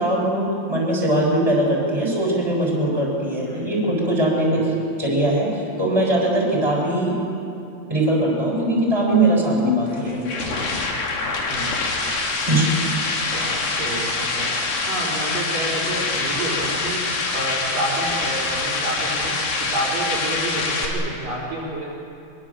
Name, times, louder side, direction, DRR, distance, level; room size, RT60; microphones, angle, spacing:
voice 1, 0.0-4.7 5.0-7.1 7.9-10.5 12.5-12.7, right 1 dB, 5° right, -2 dB, 6.5 m, -21 dB
sound 1, 9.9-20.9, left 3 dB, 50° left, 4.2 m, -25 dB
voice 2, 13.2-14.6 14.9-21.9, right 1 dB, 45° right, -4 dB, 5.6 m, -29 dB
24.5 x 24.5 x 7.4 m, 2.7 s
omnidirectional pair, 5.6 m